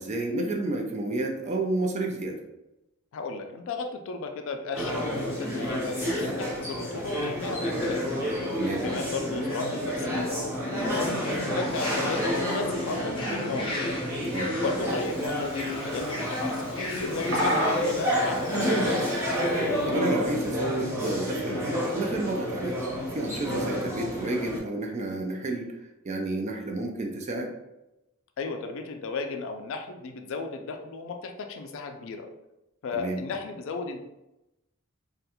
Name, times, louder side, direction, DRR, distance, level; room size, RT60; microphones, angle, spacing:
voice 1, 0.0-2.4 8.5-8.8 14.3-14.6 19.9-22.8 23.1-25.7 26.0-27.5 32.9-33.2, right 2 dB, 30° right, 2 dB, 0.3 m, -30 dB
voice 2, 3.1-8.2 8.7-13.9 14.6-18.8 28.4-32.3 32.8-34.0, left 4 dB, 65° left, 5 dB, 0.3 m, -34 dB
sound 1, 4.7-24.6, equal, 10° right, 0.7 m, -29 dB
sound 2, 11.0-19.0, left 1 dB, 25° left, 0.6 m, -39 dB
Bird vocalization bird call bird song, 14.9-19.9, equal, 80° right, 1.3 m, -35 dB
2.4 x 2.2 x 2.8 m, 0.93 s
head